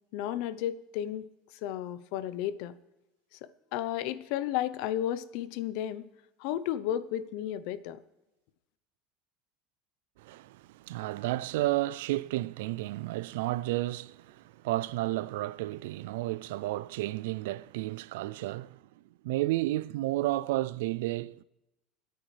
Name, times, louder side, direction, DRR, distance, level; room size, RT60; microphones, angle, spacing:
voice 1, 0.1-2.7 3.4-6.1 6.4-8.0, left 12 dB, 70° left, 0.8 m, -33 dB
voice 2, 10.2-18.8 19.2-21.4, right 17 dB, 85° right, 0.4 m, -32 dB
27.0 x 9.1 x 3.3 m
supercardioid pair, 120°, 0 cm